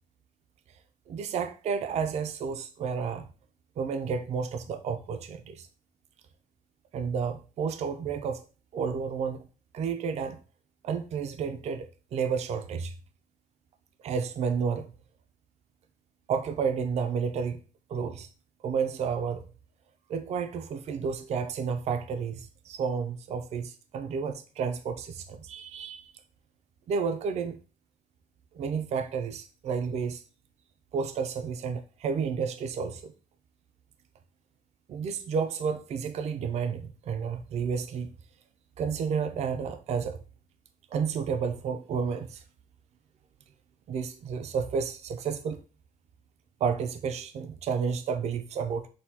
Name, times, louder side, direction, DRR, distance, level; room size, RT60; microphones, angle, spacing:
voice 1, 1.1-3.3 3.8-5.7 6.9-8.4 8.7-9.5 9.7-10.4 10.8-12.9 14.0-14.9 16.3-17.6 17.9-18.3 18.6-19.5 20.1-26.1 26.9-27.6 28.5-30.2 30.9-33.1 34.9-38.1 38.8-40.2 40.9-42.4 43.9-45.6 46.6-48.9, right 6 dB, 45° right, 0.4 m, -31 dB
6.2 x 2.2 x 2.7 m
cardioid pair, 165°, 15 cm